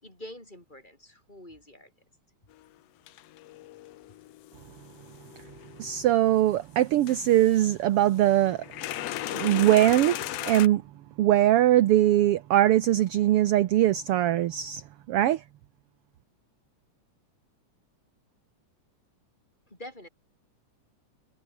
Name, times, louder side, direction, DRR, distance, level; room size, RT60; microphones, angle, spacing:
voice 1, 0.0-1.9 19.7-20.1, left 1 dB, 15° left, 5.6 m, -46 dB
sound 1, 2.5-2.6 3.1-6.4 7.0-7.7 8.2-10.7, left 15 dB, 70° left, 1.7 m, -37 dB
voice 2, 5.8-8.6 9.1-10.8 11.2-14.8 15.1-15.4, right 13 dB, 65° right, 1.5 m, -22 dB
omnidirectional pair, 3.3 m